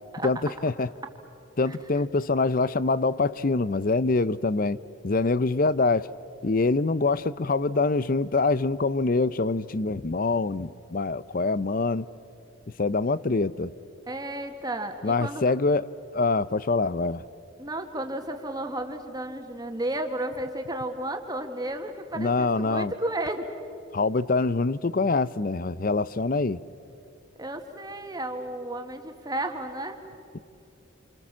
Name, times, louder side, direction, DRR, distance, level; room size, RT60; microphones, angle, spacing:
voice 1, 0.2-0.9 1.6-4.8 5.0-6.1 6.4-12.1 12.8-13.7 15.0-17.2 22.2-22.9 23.9-26.6, left 3 dB, 45° left, 17 dB, 0.6 m, -25 dB
voice 2, 1.6-2.0 14.1-15.4 17.6-23.5 27.4-30.0, right 1 dB, 20° right, 5 dB, 1.7 m, -33 dB
28.5 x 27.5 x 7.4 m, 2.6 s
head